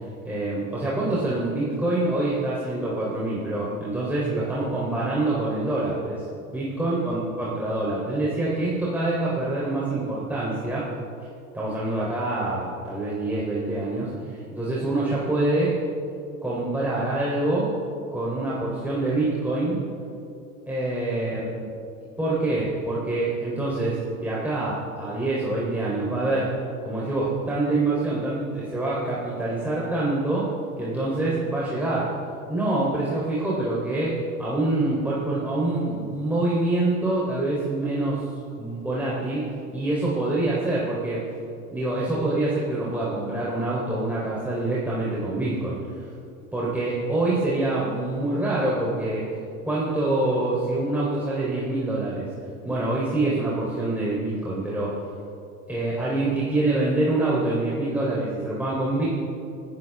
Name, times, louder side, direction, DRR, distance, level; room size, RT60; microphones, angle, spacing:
voice 1, 0.2-6.2 6.5-10.9 11.5-15.8 16.4-17.7 18.1-19.8 20.7-21.7 22.2-26.5 26.8-30.5 30.8-32.1 32.5-38.3 38.6-41.2 41.7-46.1 46.5-49.2 49.6-52.3 52.6-55.0 55.7-59.1, right 2 dB, 5° right, -7 dB, 3.8 m, -25 dB
26.5 x 14.0 x 3.7 m, 2.6 s
figure-of-eight pair, 85°, 44 cm